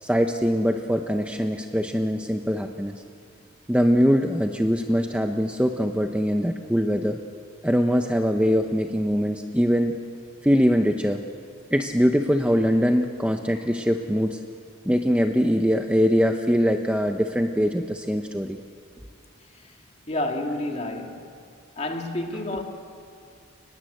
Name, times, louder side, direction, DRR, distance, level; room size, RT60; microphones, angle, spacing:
voice 1, 0.0-2.9 3.7-7.2 7.6-10.0 10.4-11.2 11.7-14.4 14.9-18.6 22.5-22.6, equal, 5° right, 4 dB, 0.8 m, -22 dB
voice 2, 20.1-21.3 21.8-22.6, left 1 dB, 30° left, 3 dB, 2.3 m, -29 dB
29.0 x 20.5 x 7.9 m, 2.3 s
head